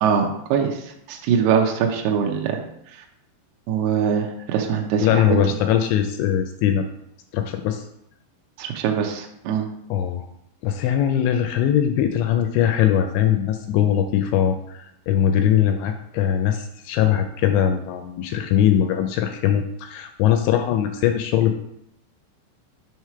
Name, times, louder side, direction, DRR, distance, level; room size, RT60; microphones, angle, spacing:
voice 1, 0.0-0.8 1.1-2.6 3.7-5.4 8.6-9.7, right 7 dB, 80° right, 2 dB, 2.4 m, -22 dB
voice 2, 5.0-6.9 7.3-7.8 9.9-10.2 10.6-21.6, left 10 dB, 85° left, 6 dB, 2.6 m, -21 dB
7.5 x 3.1 x 5.6 m, 0.77 s
omnidirectional pair, 5.4 m